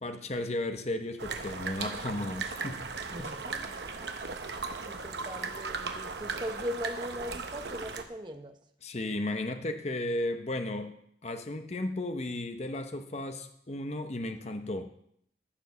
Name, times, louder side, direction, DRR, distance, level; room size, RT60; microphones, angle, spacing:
voice 1, 0.0-2.8 3.2-3.3 8.8-10.9 11.2-14.8, left 1 dB, 40° left, 7 dB, 0.8 m, -34 dB
sound 1, 1.2-8.0, right 4 dB, 70° right, 1.0 m, -37 dB
voice 2, 3.1-4.1 4.4-8.6, equal, 25° right, 6 dB, 0.9 m, -40 dB
14.0 x 5.1 x 6.6 m, 0.69 s
head